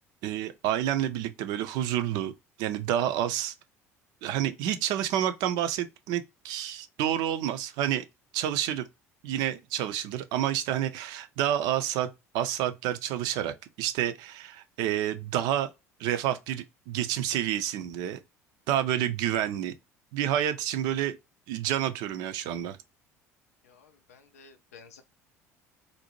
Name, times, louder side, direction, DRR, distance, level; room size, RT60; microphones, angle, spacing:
voice 1, 0.2-2.3 2.6-3.5 4.2-8.0 8.3-8.9 9.2-15.7 16.0-18.2 18.7-19.7 20.1-21.2 21.5-22.8, right 11 dB, 55° right, 0.4 m, -29 dB
voice 2, 23.6-25.0, left 5 dB, 75° left, 0.4 m, -53 dB
2.6 x 2.1 x 2.9 m
figure-of-eight pair, 60°, 8 cm